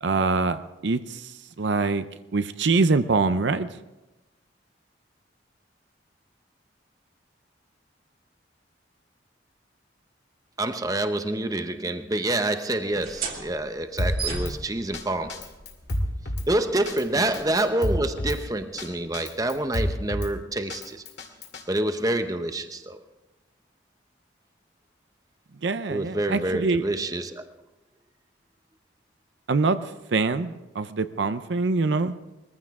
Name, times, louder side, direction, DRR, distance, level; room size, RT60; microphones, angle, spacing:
voice 1, 0.0-2.0 2.3-3.7 25.6-26.8 29.5-32.1, right 3 dB, 70° right, 11 dB, 0.6 m, -24 dB
voice 2, 10.6-15.4 16.5-21.0 21.7-23.0 25.9-27.5, right 1 dB, 20° right, 8 dB, 0.8 m, -27 dB
sound 1, 12.9-20.2, right 5 dB, 50° right, 2.2 m, -40 dB
Drum kit, 14.0-14.5 14.9-15.0 15.3-16.5 16.9-17.0 17.3-18.4 18.8-18.9 19.1-20.3 20.7-21.6, equal, 60° left, 2.2 m, -28 dB
21.0 x 15.0 x 3.7 m, 1.0 s
head